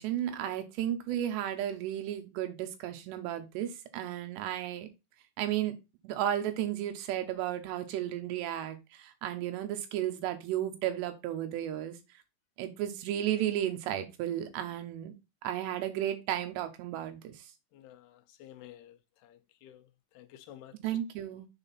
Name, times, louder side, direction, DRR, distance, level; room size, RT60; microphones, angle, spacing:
voice 1, 0.0-4.9 5.4-5.8 6.0-12.0 12.6-15.1 15.4-17.4 20.8-21.5, right 11 dB, 85° right, 3.1 m, -33 dB
voice 2, 17.7-19.0 19.2-19.8 20.2-20.7, left 11 dB, 80° left, 2.6 m, -52 dB
7.5 x 4.1 x 4.1 m
omnidirectional pair, 4.8 m